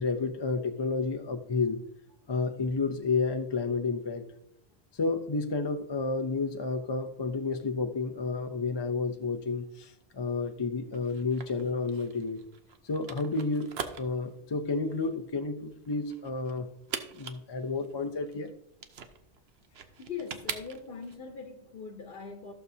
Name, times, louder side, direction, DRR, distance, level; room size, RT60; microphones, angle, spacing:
voice 1, 0.0-1.8 2.3-4.2 4.9-12.4 12.8-13.7 14.0-16.7 17.1-18.5, left 4 dB, 40° left, 0.4 m, -31 dB
sound 1, 10.9-21.1, right 6 dB, 80° right, 1.0 m, -43 dB
voice 2, 19.8-22.5, left 5 dB, 60° left, 1.1 m, -41 dB
14.5 x 6.9 x 2.7 m
omnidirectional pair, 1.1 m